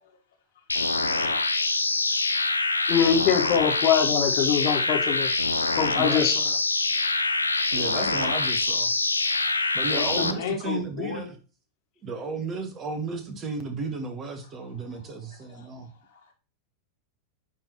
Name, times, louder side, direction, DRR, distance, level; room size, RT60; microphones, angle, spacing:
sound 1, 0.7-10.3, left 3 dB, 80° left, 0.5 m, -25 dB
voice 1, 2.9-5.3 5.8-6.5, left 8 dB, 40° left, 1.7 m, -23 dB
voice 2, 5.9-6.3 7.7-9.0 9.7-11.4 12.0-15.9, right 3 dB, 25° right, 1.4 m, -33 dB
voice 3, 9.2-11.3 15.6-15.7 16.1-16.2, left 7 dB, 60° left, 1.8 m, -34 dB
10.5 x 3.7 x 3.1 m
figure-of-eight pair, 90°, 0 cm